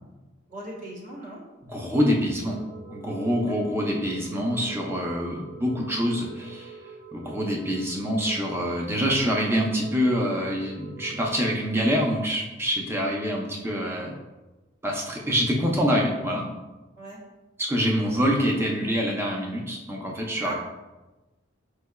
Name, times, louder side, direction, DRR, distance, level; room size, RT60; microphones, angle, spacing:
voice 1, 0.5-1.4 17.0-17.2 20.4-20.5, right 1 dB, 40° right, -5 dB, 1.1 m, -39 dB
voice 2, 1.6-2.6 2.9-6.8 7.1-14.2 14.8-16.5 17.6-20.5, equal, 10° right, -1 dB, 0.5 m, -25 dB
sound 1, 2.4-11.5, right 5 dB, 65° right, 0.5 m, -45 dB
5.5 x 3.2 x 2.2 m, 1.1 s
head